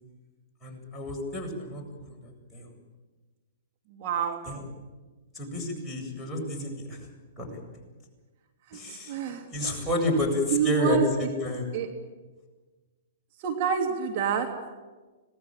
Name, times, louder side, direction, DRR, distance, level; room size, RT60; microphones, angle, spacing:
voice 1, 0.6-1.8 2.1-2.7 4.4-4.6 5.3-7.0 7.4-7.5 8.7-9.2 9.5-11.7, left 1 dB, 10° left, -2 dB, 7.9 m, -30 dB
voice 2, 4.0-4.4 8.9-9.4 10.5-11.1 11.7-11.9 13.4-14.5, right 8 dB, 45° right, 3 dB, 3.0 m, -27 dB
26.0 x 19.5 x 9.1 m, 1.3 s
hypercardioid pair, 115°, 0 cm